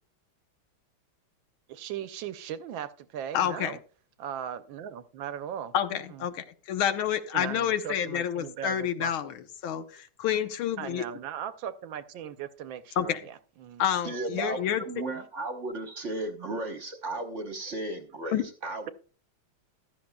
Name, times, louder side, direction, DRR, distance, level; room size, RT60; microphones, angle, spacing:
voice 1, 1.7-3.8 4.2-6.2 7.3-9.1 10.8-13.8 15.1-15.2, right 9 dB, 70° right, 12 dB, 1.3 m, -38 dB
voice 2, 3.3-3.8 5.7-11.0 13.0-13.2 13.8-14.8 18.3-18.4, left 9 dB, 75° left, 10 dB, 1.7 m, -29 dB
voice 3, 14.0-18.9, right 2 dB, 45° right, 6 dB, 1.1 m, -35 dB
15.0 x 11.5 x 2.3 m, 0.39 s
omnidirectional pair, 2.3 m